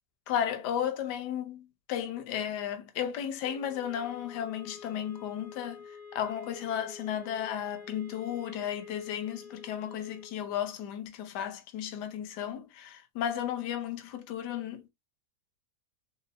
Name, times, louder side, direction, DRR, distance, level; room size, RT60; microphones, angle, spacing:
voice 1, 0.3-14.8, left 9 dB, 75° left, 1.4 m, -34 dB
sound 1, 3.4-10.4, left 5 dB, 10° right, 0.6 m, -48 dB
4.4 x 3.6 x 2.7 m
omnidirectional pair, 1.8 m